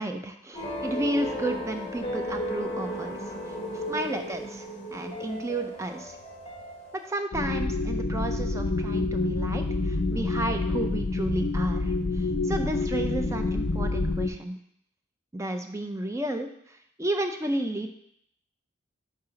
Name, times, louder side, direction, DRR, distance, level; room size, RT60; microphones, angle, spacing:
voice 1, 0.0-3.2 3.9-4.7 4.9-6.2 6.9-11.9 12.5-14.6 15.3-16.5 17.0-17.9, right 1 dB, 15° right, 6 dB, 0.4 m, -32 dB
sound 1, 0.5-7.2, equal, 30° left, 0.9 m, -35 dB
sound 2, 7.3-14.3, left 3 dB, 55° left, 0.5 m, -27 dB
4.8 x 3.9 x 5.6 m, 0.71 s
head